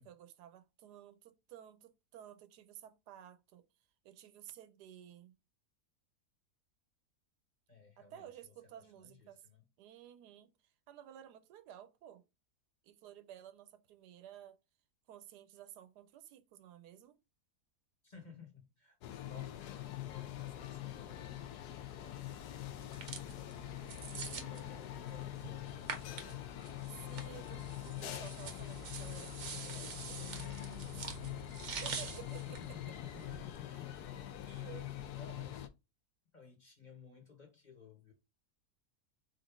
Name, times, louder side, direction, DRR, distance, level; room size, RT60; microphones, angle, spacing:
voice 1, 0.0-3.6 4.0-5.3 8.0-9.4 9.8-12.2 12.8-14.6 15.1-17.2 24.1-24.7 27.0-31.2 31.8-32.7 33.6-35.1, right 11 dB, 85° right, 1.2 m, -54 dB
voice 2, 7.7-9.6 18.0-23.7 24.1-27.2 32.3-34.6 35.1-35.7 36.3-38.1, left 5 dB, 30° left, 1.4 m, -57 dB
sound 1, 19.0-35.7, left 13 dB, 80° left, 1.2 m, -44 dB
sound 2, 22.8-33.6, right 6 dB, 55° right, 1.1 m, -47 dB
3.8 x 3.7 x 3.5 m
omnidirectional pair, 1.7 m